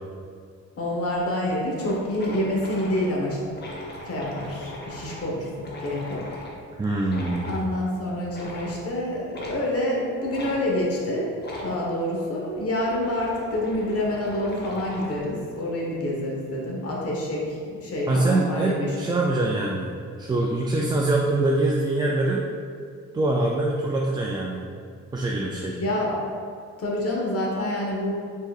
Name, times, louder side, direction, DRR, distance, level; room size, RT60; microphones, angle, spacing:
voice 1, 0.8-3.4 4.0-6.2 7.5-11.3 11.6-18.9 25.8-26.2 26.8-28.1, left 1 dB, 50° left, -3 dB, 1.2 m, -27 dB
sound 1, 1.1-1.2 1.5-1.6 1.8-6.6 7.1-7.6 8.3-8.8 9.3-9.6 10.3-10.5 11.4-11.7 12.5-15.3, left 1 dB, 35° left, 0.9 m, -39 dB
voice 2, 6.8-7.6 18.1-19.9 20.2-22.5 23.1-24.6 25.1-25.8, right 2 dB, 15° right, -3 dB, 0.3 m, -24 dB
4.6 x 3.9 x 2.4 m, 2.2 s
cardioid pair, 90°, 30 cm